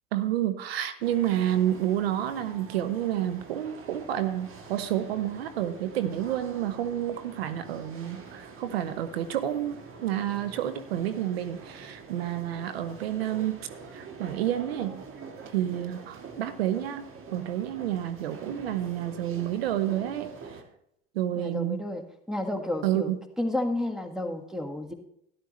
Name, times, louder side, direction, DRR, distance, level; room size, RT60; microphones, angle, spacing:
voice 1, 0.1-13.6 13.9-15.0 15.5-20.3 21.1-21.8 22.8-23.2, right 12 dB, 85° right, 11 dB, 0.7 m, -29 dB
sound 1, 1.0-20.6, right 5 dB, 45° right, 1.7 m, -45 dB
voice 2, 21.4-23.1 23.4-24.9, left 1 dB, ahead, 5 dB, 1.6 m, -31 dB
12.5 x 11.0 x 3.1 m, 0.74 s
hypercardioid pair, 65°, 30 cm